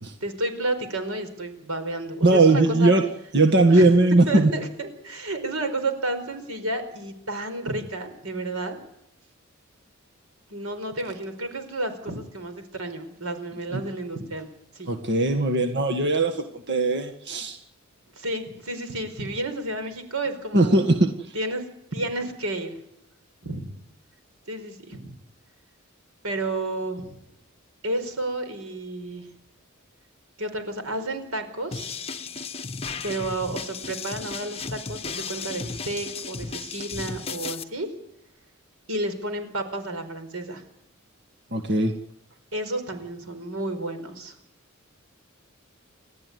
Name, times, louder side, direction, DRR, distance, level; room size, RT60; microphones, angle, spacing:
voice 1, 0.2-2.9 3.7-3.9 4.3-8.8 10.5-14.5 14.7-15.0 18.2-20.9 21.3-21.6 21.9-22.8 23.4-23.7 24.5-25.1 26.2-27.1 27.8-29.3 30.4-32.0 33.0-37.9 38.9-40.6 42.5-44.3, right 2 dB, 90° right, 8 dB, 4.8 m, -31 dB
voice 2, 2.2-3.0 3.3-4.5 14.9-17.6 20.5-21.3 41.5-41.9, right 2 dB, 55° right, 4 dB, 1.8 m, -19 dB
sound 1, 31.7-37.6, left 5 dB, 30° left, 1.2 m, -34 dB
30.0 x 13.5 x 9.6 m, 0.80 s
head